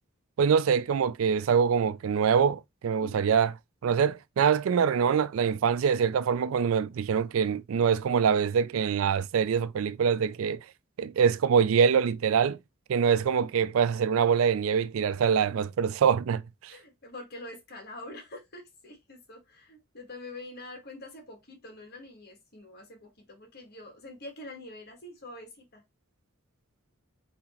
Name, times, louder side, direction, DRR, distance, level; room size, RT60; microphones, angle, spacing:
voice 1, 0.4-3.5 3.8-10.6 11.0-12.6 12.9-16.7, right 7 dB, 65° right, 0.3 m, -24 dB
voice 2, 3.0-3.4 16.7-25.8, left 2 dB, 50° left, 1.7 m, -45 dB
4.0 x 2.8 x 4.3 m
head